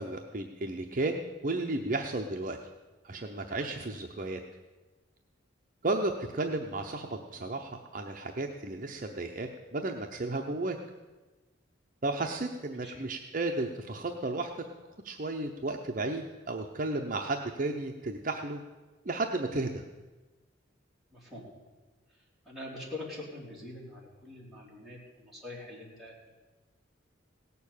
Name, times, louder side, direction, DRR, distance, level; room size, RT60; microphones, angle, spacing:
voice 1, 0.0-2.6 3.0-4.4 5.8-10.8 12.0-14.6 15.0-18.6 19.0-19.8, right 2 dB, 40° right, 2 dB, 0.7 m, -33 dB
voice 2, 12.7-13.1 21.1-21.4 22.1-26.1, left 2 dB, ahead, -6 dB, 3.4 m, -44 dB
17.0 x 6.9 x 8.5 m, 1.2 s
head